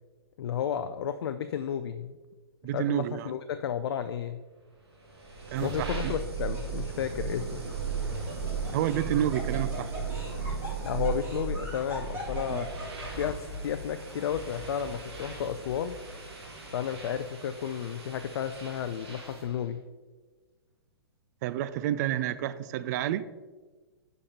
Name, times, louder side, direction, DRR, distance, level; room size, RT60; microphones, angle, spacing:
voice 1, 0.4-2.1 2.7-4.4 5.6-7.6 10.8-12.7 13.0-16.0 16.7-19.8, left 8 dB, 65° left, 10 dB, 0.4 m, -32 dB
voice 2, 2.6-3.3 5.5-6.1 8.7-9.9 12.5-12.7 21.4-23.3, right 12 dB, 45° right, 15 dB, 0.4 m, -30 dB
sound 1, 5.0-19.6, right 5 dB, 90° right, 2.0 m, -36 dB
Laughter, 5.5-5.9 6.5-6.6 7.9-13.5, left 1 dB, 15° right, 2.1 m, -42 dB
9.8 x 5.2 x 2.8 m, 1.3 s
hypercardioid pair, 130°, 13 cm